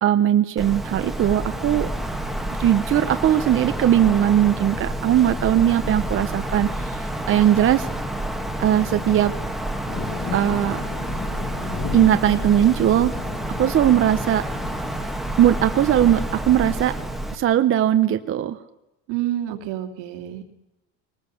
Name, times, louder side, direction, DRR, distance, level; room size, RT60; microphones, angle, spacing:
voice 1, 0.0-1.9 2.6-7.9 8.6-9.3 10.3-10.8 11.9-13.1 13.6-14.4 15.4-16.9 17.3-18.6, right 11 dB, 30° right, 9 dB, 0.8 m, -19 dB
Wind, 0.6-17.3, right 1 dB, ahead, 1.3 m, -29 dB
sound 1, 9.9-15.2, left 6 dB, 30° left, 2.0 m, -35 dB
voice 2, 19.1-20.5, right 12 dB, 75° right, 5 dB, 2.6 m, -28 dB
20.5 x 19.5 x 7.1 m, 0.94 s
cardioid pair, 145°, 42 cm